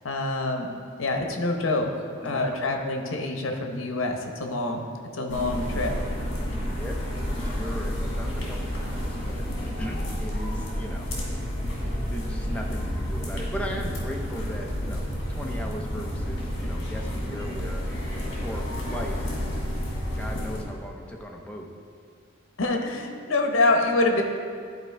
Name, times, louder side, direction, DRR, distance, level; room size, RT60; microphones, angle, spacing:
voice 1, 0.0-0.7 1.0-1.9 2.2-4.9 5.1-5.9 22.6-24.2, left 2 dB, 80° left, 3 dB, 0.8 m, -26 dB
voice 2, 2.2-2.6 6.7-11.4 11.8-17.8 18.2-19.2 20.2-21.7, equal, 5° left, 0 dB, 0.6 m, -38 dB
sound 1, 5.3-20.6, equal, 60° left, 1.7 m, -30 dB
11.0 x 4.4 x 3.4 m, 2.2 s
head